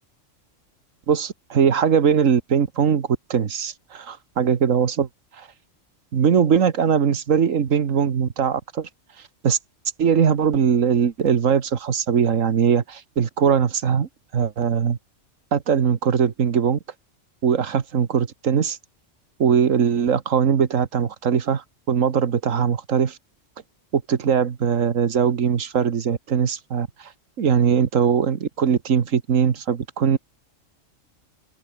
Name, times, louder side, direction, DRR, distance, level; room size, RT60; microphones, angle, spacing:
voice 1, 1.1-5.1 5.4-5.5 6.1-8.9 9.4-9.6 10.0-15.0 15.5-16.8 17.4-18.8 19.4-23.2 23.9-27.1 27.4-30.2, right 7 dB, 85° right, 1.7 m, -21 dB
omnidirectional pair, 1.3 m